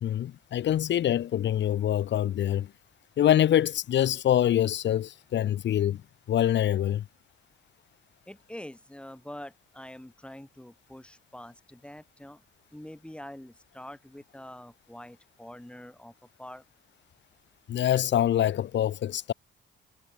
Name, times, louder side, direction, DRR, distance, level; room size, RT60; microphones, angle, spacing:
voice 1, 0.0-2.7 3.2-6.0 6.3-7.0 17.7-19.3, left 11 dB, 65° left, 1.3 m, -25 dB
voice 2, 8.3-12.4 12.7-16.1 16.4-16.6, left 1 dB, 5° left, 5.1 m, -45 dB
cardioid pair, 90°, 20 cm